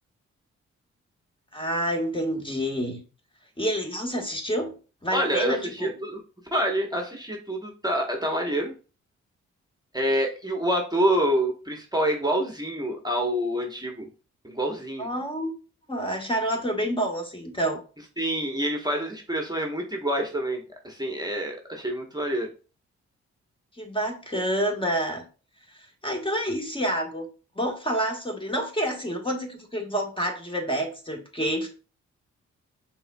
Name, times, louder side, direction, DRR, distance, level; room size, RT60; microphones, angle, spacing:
voice 1, 1.5-3.0 3.6-4.8 5.0-5.9 15.0-15.5 15.9-17.8 23.8-25.3 25.7-27.3 27.6-31.7, equal, 15° left, 2 dB, 1.4 m, -28 dB
voice 2, 5.1-6.2 6.5-8.7 9.9-14.1 14.4-15.1 18.2-22.5, right 1 dB, 15° right, 2 dB, 1.1 m, -27 dB
5.4 x 3.6 x 2.2 m, 0.35 s
supercardioid pair, 45°, 30 cm